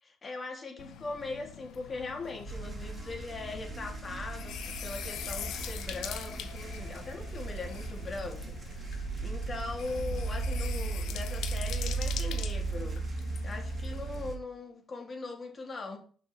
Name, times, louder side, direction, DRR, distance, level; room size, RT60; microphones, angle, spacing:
voice 1, 0.0-13.0 13.4-16.0, left 3 dB, 40° left, 3.4 m, -40 dB
sound 1, 0.8-14.3, left 9 dB, 70° left, 0.9 m, -44 dB
sound 2, 2.5-14.4, right 3 dB, 35° right, 3.4 m, -36 dB
6.8 x 6.2 x 4.8 m
hypercardioid pair, 50°, 0 cm